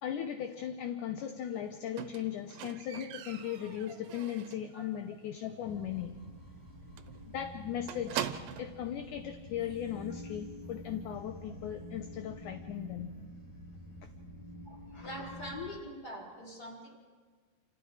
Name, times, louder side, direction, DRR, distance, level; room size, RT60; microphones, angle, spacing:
voice 1, 0.0-6.2 7.3-13.2, left 10 dB, 70° left, 6 dB, 2.0 m, -38 dB
Squeak, 2.0-4.7 5.1-5.5 5.8-5.9 6.2-6.3 6.6-6.7 7.0-8.8 9.7-9.8, right 10 dB, 75° right, 2.7 m, -41 dB
sound 1, 5.6-15.8, left 1 dB, 50° left, 6.6 m, -48 dB
voice 2, 14.7-17.0, left 1 dB, 25° left, -1 dB, 3.8 m, -43 dB
28.5 x 28.0 x 4.9 m, 1.5 s
omnidirectional pair, 4.5 m